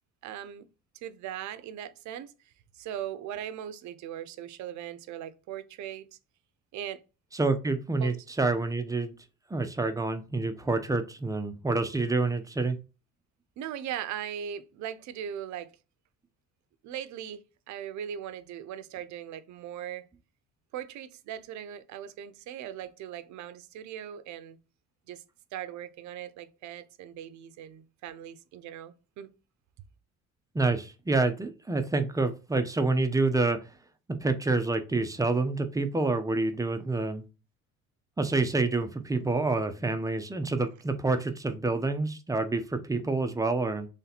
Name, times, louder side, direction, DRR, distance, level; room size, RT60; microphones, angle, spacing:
voice 1, 0.2-0.7 1.0-2.3 2.7-6.1 6.7-7.0 8.0-8.2 13.6-15.7 16.8-20.1 20.7-24.6 25.1-25.2 25.5-29.3, right 10 dB, 60° right, 0.5 m, -39 dB
voice 2, 7.3-9.1 9.5-12.8 30.5-33.6 34.1-37.2 38.2-43.9, right 3 dB, 10° right, 0.4 m, -28 dB
3.2 x 2.8 x 4.0 m
cardioid pair, 130°, 33 cm